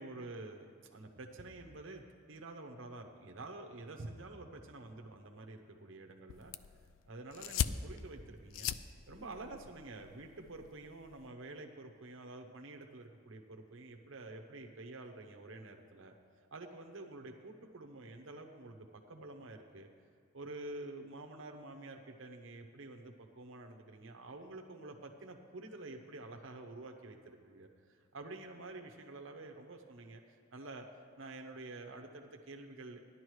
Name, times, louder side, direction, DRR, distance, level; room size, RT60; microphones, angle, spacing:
voice 1, 0.0-6.5 7.1-8.7 9.1-16.1 16.5-19.9 20.3-30.9 31.2-33.0, right 2 dB, 85° right, 3 dB, 0.8 m, -49 dB
sound 1, 6.3-11.3, left 8 dB, 85° left, 0.4 m, -41 dB
15.0 x 11.0 x 3.2 m, 2.1 s
head